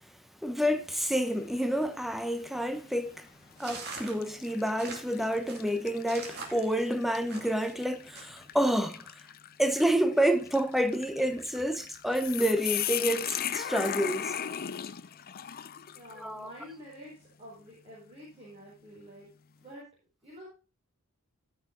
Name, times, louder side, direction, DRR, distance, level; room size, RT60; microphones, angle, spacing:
voice 1, 0.4-3.3 3.6-9.1 9.6-14.3 16.2-16.5, equal, ahead, 0.8 m, -29 dB
sound 1, 1.3-1.8 2.3-2.4 3.4-3.6 4.2-16.2, left 10 dB, 40° left, 0.5 m, -38 dB
sound 2, 3.6-7.7 8.1-8.7, right 4 dB, 45° right, 2.4 m, -43 dB
voice 2, 15.9-19.3 19.6-19.8 20.2-20.4, equal, 30° right, 4.2 m, -48 dB
14.0 x 6.5 x 3.8 m
head